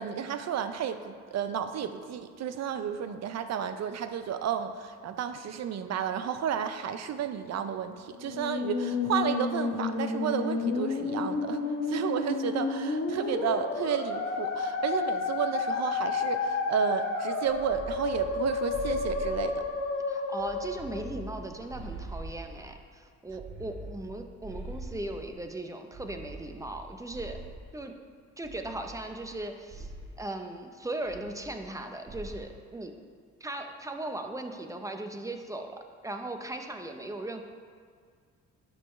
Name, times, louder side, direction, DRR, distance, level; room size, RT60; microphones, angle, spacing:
voice 1, 0.0-19.6, right 8 dB, 60° right, 9 dB, 0.6 m, -32 dB
Musical instrument, 8.2-21.5, left 4 dB, 45° left, 1.2 m, -31 dB
sound 1, 17.4-19.9 20.4-22.8 23.3-25.4 25.9-27.8 28.4-29.4 29.7-30.2 31.1-31.8 32.1-32.5, right 2 dB, 40° right, 1.1 m, -43 dB
voice 2, 20.1-27.4 27.7-27.9 28.4-29.9 30.2-32.9 33.4-37.4, right 2 dB, 10° right, 5 dB, 0.7 m, -38 dB
11.0 x 5.6 x 3.2 m, 2.1 s
cardioid pair, 90°, 30 cm